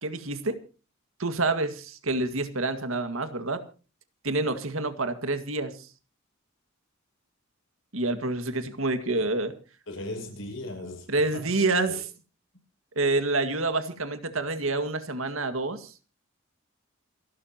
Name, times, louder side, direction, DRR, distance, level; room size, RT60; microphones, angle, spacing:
voice 1, 0.0-0.6 1.2-3.6 4.2-5.9 7.9-9.6 11.1-12.0 13.0-15.9, right 2 dB, 80° right, 10 dB, 2.0 m, -28 dB
voice 2, 9.9-11.1 11.3-11.5 11.8-12.0, left 1 dB, 65° left, 3 dB, 6.9 m, -37 dB
28.0 x 12.5 x 3.0 m, 0.34 s
head